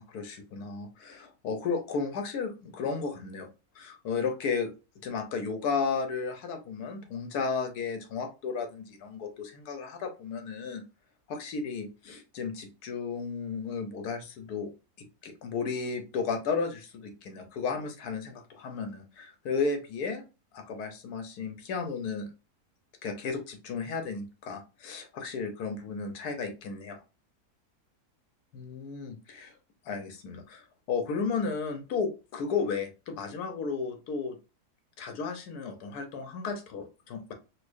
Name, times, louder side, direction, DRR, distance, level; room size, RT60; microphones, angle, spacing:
voice 1, 0.0-3.5 3.7-4.7 5.0-10.8 11.3-14.7 15.2-20.2 20.5-22.3 23.0-27.0 28.5-29.5 29.8-34.4 35.0-37.3, left 5 dB, 80° left, 5 dB, 1.3 m, -34 dB
4.2 x 2.5 x 2.5 m, 0.31 s
omnidirectional pair, 1.6 m